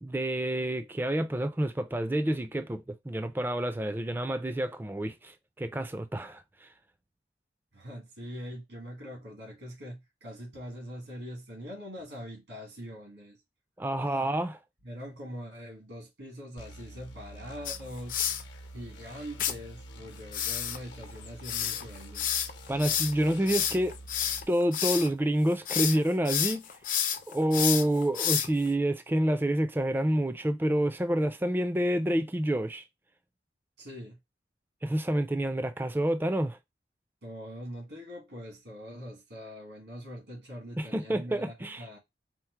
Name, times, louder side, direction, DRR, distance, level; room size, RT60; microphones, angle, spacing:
voice 1, 0.0-5.3 5.6-6.4 13.8-14.6 22.7-24.0 24.5-26.6 27.3-32.8 34.8-36.6 40.8-41.8, right 1 dB, 10° right, 0.3 m, -28 dB
voice 2, 7.7-13.4 14.0-14.3 14.8-18.2 18.6-22.3 33.8-34.2 37.2-42.0, equal, 85° right, 1.7 m, -43 dB
sound 1, 16.6-24.5, right 1 dB, 75° left, 0.9 m, -47 dB
sound 2, 17.7-18.4 19.4-19.5 20.3-25.1 25.5-26.0 26.3-28.7, left 9 dB, 45° left, 0.5 m, -30 dB
4.4 x 2.0 x 4.4 m
head